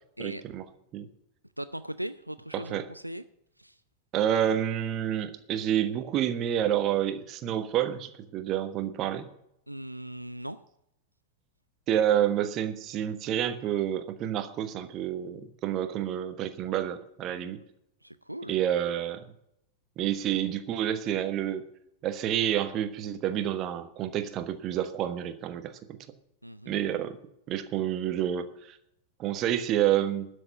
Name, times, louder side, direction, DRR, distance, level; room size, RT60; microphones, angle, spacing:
voice 1, 0.2-0.6 0.9-1.1 2.5-2.9 4.1-9.3 11.9-17.6 18.5-19.3 20.0-21.6 22.0-26.0 26.7-27.2 27.5-28.8 29.2-30.3, right 10 dB, 35° right, 11 dB, 1.1 m, -29 dB
voice 2, 1.6-3.2 3.6-3.8 9.7-10.6 18.0-18.5 26.4-26.7, right 1 dB, 90° right, 13 dB, 0.4 m, -38 dB
12.5 x 6.6 x 9.2 m, 0.78 s
figure-of-eight pair, 90°, 0 cm